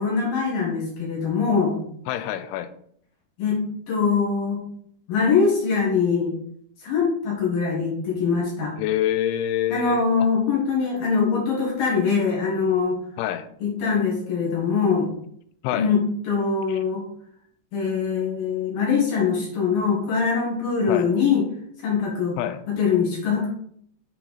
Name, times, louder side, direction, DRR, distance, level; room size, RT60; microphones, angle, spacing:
voice 1, 0.0-1.8 3.4-4.6 5.1-6.3 6.8-8.7 9.7-13.0 13.6-15.1 15.7-16.0 16.3-17.0 17.7-21.4 21.8-22.4 22.7-23.5, left 5 dB, 60° left, 3.1 m, -23 dB
voice 2, 2.1-2.7 8.8-10.3 13.2-13.5 15.6-15.9 16.7-16.8 20.9-21.1 22.4-22.6, left 11 dB, 90° left, 3.0 m, -26 dB
7.8 x 4.4 x 4.1 m
omnidirectional pair, 5.3 m